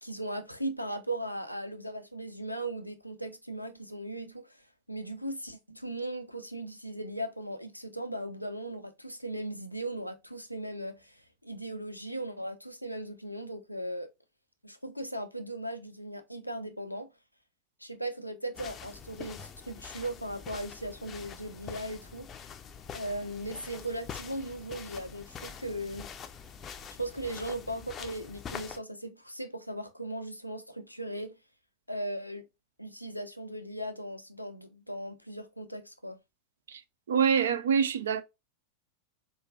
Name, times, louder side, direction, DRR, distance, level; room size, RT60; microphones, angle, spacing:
voice 1, 0.0-4.6 4.9-14.1 14.6-17.1 17.8-22.3 22.9-26.1 27.0-31.3 31.9-32.4 32.8-36.2, right 1 dB, 90° left, 0.6 m, -38 dB
sound 1, 18.5-28.8, left 7 dB, 25° left, 0.5 m, -45 dB
voice 2, 37.1-38.2, right 7 dB, 65° right, 0.5 m, -25 dB
4.6 x 2.5 x 2.3 m
figure-of-eight pair, 90°, 0 cm